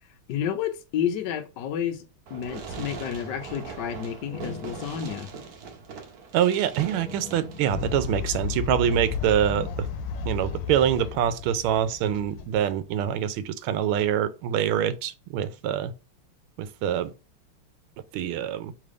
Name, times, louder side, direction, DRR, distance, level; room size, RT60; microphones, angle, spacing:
voice 1, 0.3-2.0 2.3-5.3, left 9 dB, 65° left, 1.2 m, -30 dB
Fireworks, 2.3-8.3, right 5 dB, 60° right, 1.1 m, -41 dB
sound 1, 4.2-6.1 6.8-9.1 9.4-9.7, left 4 dB, 40° left, 1.1 m, -44 dB
voice 2, 6.3-9.7 10.2-15.9 16.6-17.1 18.1-18.7, right 10 dB, 80° right, 1.4 m, -25 dB
Fowl, 7.7-13.0, left 6 dB, 90° left, 1.5 m, -33 dB
3.6 x 3.4 x 3.7 m
omnidirectional pair, 2.4 m